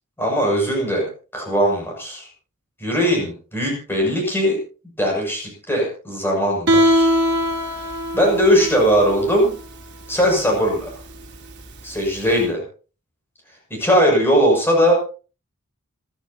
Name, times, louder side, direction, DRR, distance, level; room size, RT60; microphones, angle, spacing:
voice 1, 0.2-2.3 2.8-4.6 5.0-7.1 7.6-9.6 10.1-10.9 11.8-12.6 13.7-14.9, equal, 10° left, -1 dB, 7.0 m, -19 dB
Guitar, 6.7-12.4, equal, 50° right, 3.5 m, -22 dB
28.0 x 12.0 x 2.9 m, 0.36 s
head